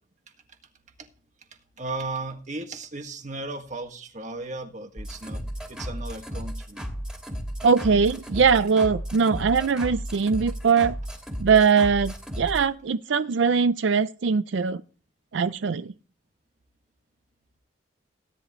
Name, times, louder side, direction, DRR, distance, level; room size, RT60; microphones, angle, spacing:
voice 1, 1.8-5.4 5.7-6.9, right 2 dB, 40° right, 1.8 m, -35 dB
sound 1, 5.0-12.7, equal, 5° right, 2.6 m, -34 dB
voice 2, 7.6-11.0 11.4-14.8 15.3-15.9, right 5 dB, 80° right, 0.5 m, -21 dB
17.5 x 10.5 x 3.1 m
head